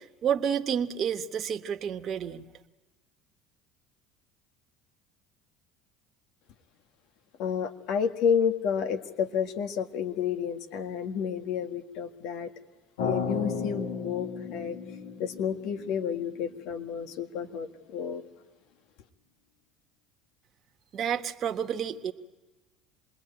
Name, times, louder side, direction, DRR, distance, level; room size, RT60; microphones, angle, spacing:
voice 1, 0.0-2.4 20.9-22.1, right 8 dB, 50° right, 6 dB, 1.6 m, -30 dB
voice 2, 7.4-12.5 13.0-14.8 15.2-18.2, left 7 dB, 65° left, 7 dB, 1.8 m, -30 dB
sound 1, 13.0-17.1, left 5 dB, 85° left, 2.0 m, -34 dB
27.5 x 21.0 x 9.2 m, 1.2 s
hypercardioid pair, 75°, 0 cm